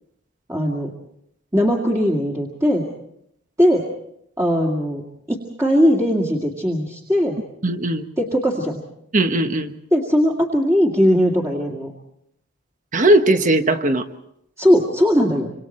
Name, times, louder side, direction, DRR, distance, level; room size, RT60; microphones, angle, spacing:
voice 1, 0.5-0.9 1.5-2.9 3.6-3.8 4.4-7.4 8.2-8.8 9.9-11.9 14.6-15.5, equal, 15° right, -2 dB, 2.1 m, -19 dB
voice 2, 7.6-8.0 9.1-9.7 12.9-14.0, right 1 dB, 40° right, 8 dB, 1.3 m, -18 dB
26.5 x 26.5 x 4.4 m, 0.75 s
head